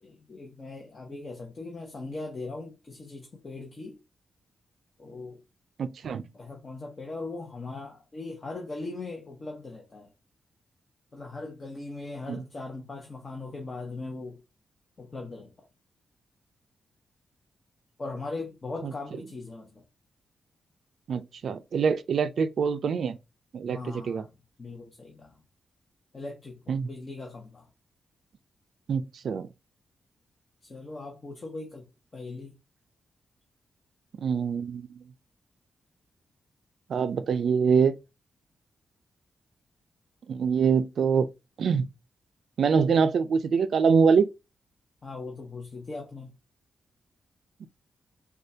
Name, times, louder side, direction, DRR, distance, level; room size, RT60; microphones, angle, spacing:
voice 1, 0.0-4.0 5.0-5.4 6.3-10.1 11.1-14.4 15.0-15.7 18.0-19.8 23.7-24.3 24.6-25.4 26.1-27.7 30.6-32.5 45.0-46.3, left 3 dB, 35° left, 1.0 m, -39 dB
voice 2, 5.8-6.2 12.3-12.4 21.1-23.2 23.5-23.8 24.1-24.2 26.7-26.9 28.9-29.5 34.2-34.9 36.9-38.0 40.3-41.3 41.6-41.9 42.6-44.3 47.6-47.7, right 6 dB, 70° right, 0.4 m, -24 dB
6.4 x 2.4 x 2.8 m
cardioid pair, 95°, 0 cm